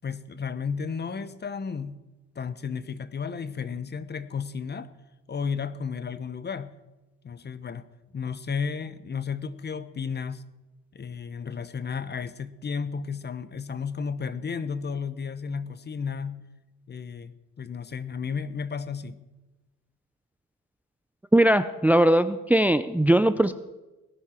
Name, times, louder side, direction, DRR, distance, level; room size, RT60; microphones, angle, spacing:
voice 1, 0.0-2.0 2.4-4.9 5.3-6.7 7.2-7.9 8.1-10.4 10.9-16.4 16.9-19.2, left 6 dB, 35° left, 15 dB, 0.9 m, -33 dB
voice 2, 21.3-23.5, right 1 dB, 5° right, 13 dB, 0.5 m, -20 dB
18.0 x 10.5 x 4.4 m, 1.1 s
cardioid pair, 90°, 30 cm